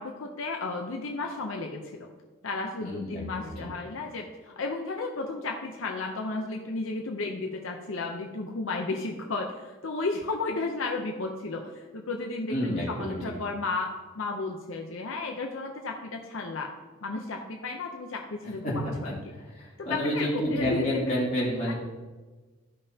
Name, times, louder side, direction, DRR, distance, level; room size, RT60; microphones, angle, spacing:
voice 1, 0.0-2.1 2.4-13.9 14.1-16.7 17.0-19.1 19.8-21.1 21.7-21.8, left 3 dB, 80° left, 2 dB, 0.7 m, -33 dB
voice 2, 2.8-3.7 12.5-13.1 18.6-18.7 19.5-21.7, equal, 35° left, -6 dB, 2.8 m, -29 dB
14.0 x 5.4 x 2.8 m, 1.3 s
head